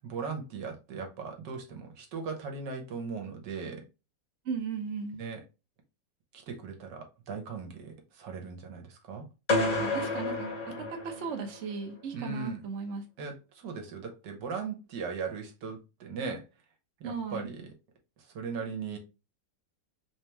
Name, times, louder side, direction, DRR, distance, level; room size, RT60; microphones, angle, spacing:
voice 1, 0.0-3.8 5.2-5.4 6.3-9.2 12.1-12.6 13.2-16.4 17.0-17.7 18.2-19.0, right 5 dB, 70° right, 1.5 m, -38 dB
voice 2, 4.4-5.2 9.8-13.0 17.0-17.5, right 5 dB, 55° right, 0.9 m, -36 dB
sound 1, 9.5-11.6, left 2 dB, 30° left, 0.9 m, -30 dB
3.5 x 2.9 x 3.3 m
omnidirectional pair, 1.9 m